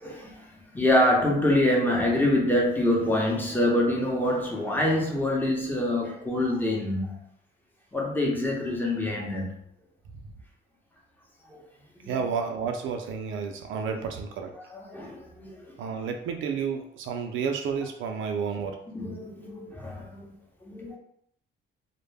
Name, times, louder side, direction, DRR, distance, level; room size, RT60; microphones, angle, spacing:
voice 1, 0.1-0.5 0.7-7.2 7.9-9.5 12.0-12.1 13.7-14.0 14.7-15.8 18.9-20.3 20.6-21.0, left 1 dB, 10° left, -2 dB, 0.7 m, -25 dB
voice 2, 12.1-14.5 15.8-18.8, right 6 dB, 80° right, 4 dB, 0.4 m, -31 dB
2.2 x 2.1 x 3.3 m, 0.67 s
cardioid pair, 90°, 20 cm